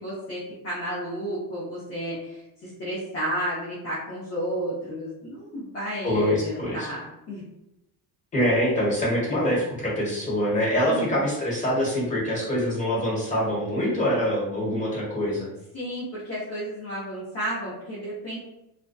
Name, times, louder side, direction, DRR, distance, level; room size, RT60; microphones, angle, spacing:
voice 1, 0.0-7.4 10.9-11.2 15.7-18.4, equal, 35° left, -8 dB, 0.8 m, -32 dB
voice 2, 6.0-6.9 8.3-15.5, equal, 20° left, -6 dB, 1.1 m, -24 dB
2.6 x 2.2 x 2.2 m, 0.88 s
cardioid pair, 130°, 40 cm